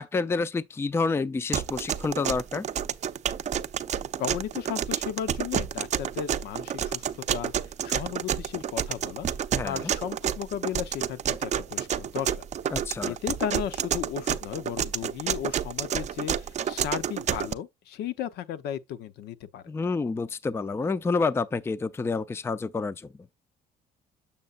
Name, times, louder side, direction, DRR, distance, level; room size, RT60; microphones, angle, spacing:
voice 1, 0.0-2.7 9.5-9.9 12.7-13.2 19.7-23.1, left 4 dB, 15° left, 0.4 m, -28 dB
sound 1, 1.5-17.5, right 9 dB, 45° right, 0.6 m, -29 dB
voice 2, 4.2-9.3 9.6-12.5 13.0-19.6, left 10 dB, 75° left, 0.8 m, -35 dB
7.0 x 6.5 x 2.4 m
cardioid pair, 110°, 17 cm